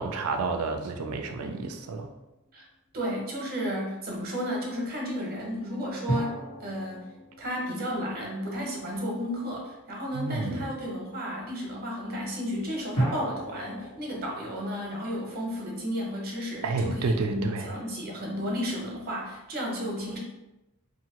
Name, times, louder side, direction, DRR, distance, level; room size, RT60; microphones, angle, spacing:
voice 1, 0.0-2.1 10.1-10.7 16.6-17.7, right 3 dB, 75° right, 6 dB, 0.4 m, -30 dB
sound 1, 2.3-2.4 6.1-8.9 13.0-16.2, right 1 dB, 85° left, 1.2 m, -35 dB
voice 2, 2.9-7.1 7.4-20.2, equal, 45° right, -1 dB, 0.8 m, -33 dB
2.8 x 2.6 x 2.9 m, 0.96 s
head